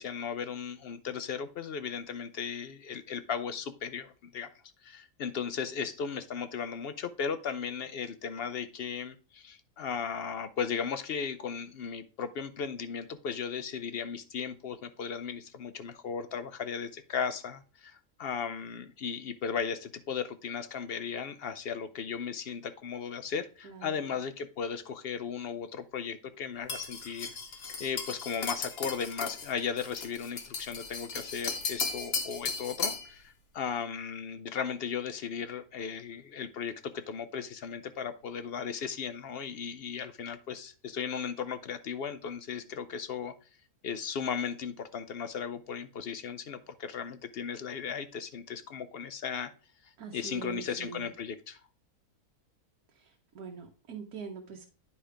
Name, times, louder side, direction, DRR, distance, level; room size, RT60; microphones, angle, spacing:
voice 1, 0.0-4.5 4.8-27.4 27.8-43.3 43.8-49.5 49.8-51.6, left 6 dB, 70° left, 11 dB, 0.6 m, -36 dB
sound 1, 26.7-33.1, left 4 dB, 45° left, 1.1 m, -36 dB
voice 2, 50.0-51.1 53.3-54.7, right 5 dB, 90° right, 1 dB, 1.4 m, -42 dB
9.7 x 3.4 x 5.0 m, 0.36 s
omnidirectional pair, 1.5 m